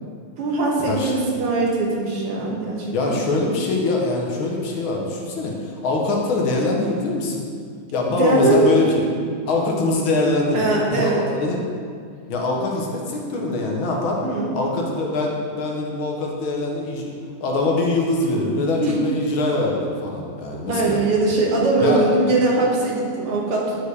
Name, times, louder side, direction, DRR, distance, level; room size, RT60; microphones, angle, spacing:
voice 1, 0.4-3.2 8.1-9.1 10.5-11.2 14.2-14.6 18.8-19.0 20.7-23.8, right 2 dB, 85° right, -2 dB, 2.2 m, -21 dB
voice 2, 2.9-7.5 7.9-9.0 9.5-11.6 12.3-14.2 14.5-17.1 17.4-21.0 21.8-22.1, left 2 dB, 70° left, -1 dB, 1.9 m, -23 dB
9.8 x 4.8 x 4.8 m, 2.2 s
omnidirectional pair, 2.4 m